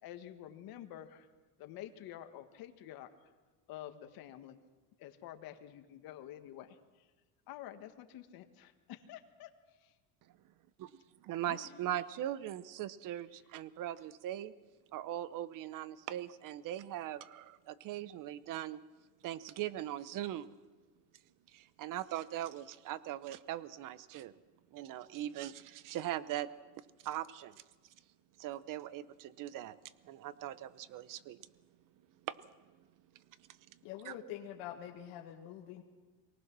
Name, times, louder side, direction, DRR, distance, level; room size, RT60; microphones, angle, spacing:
voice 1, 0.0-1.3 1.6-3.1 3.7-4.6 5.0-6.8 7.5-9.5 11.5-11.7, left 12 dB, 60° left, 7 dB, 1.7 m, -49 dB
voice 2, 10.8-14.5 14.9-18.8 19.2-20.5 21.5-24.3 24.7-26.5 26.8-27.6 28.4-29.8 30.0-31.4 32.2-32.4 32.8-32.9 33.4-33.8 34.0-34.1, right 12 dB, 50° right, 16 dB, 0.9 m, -40 dB
voice 3, 33.8-35.8, left 10 dB, 80° left, 0 dB, 1.8 m, -45 dB
24.0 x 18.5 x 6.2 m, 1.3 s
cardioid pair, 130°, 40 cm